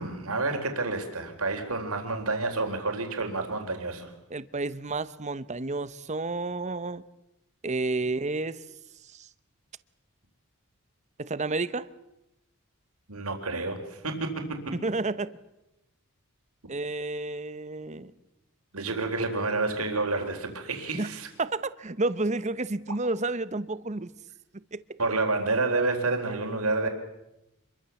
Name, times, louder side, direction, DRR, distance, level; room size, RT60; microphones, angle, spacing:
voice 1, 0.0-4.1 13.1-14.7 18.7-21.3 25.0-26.9, right 3 dB, 80° right, 4.0 m, -29 dB
voice 2, 4.3-7.0 7.6-8.6 9.1-9.3 11.2-11.9 14.8-15.3 16.7-18.1 20.9-21.1 21.4-24.1 24.7-24.8, right 2 dB, 30° right, 0.8 m, -30 dB
27.0 x 22.5 x 7.1 m
head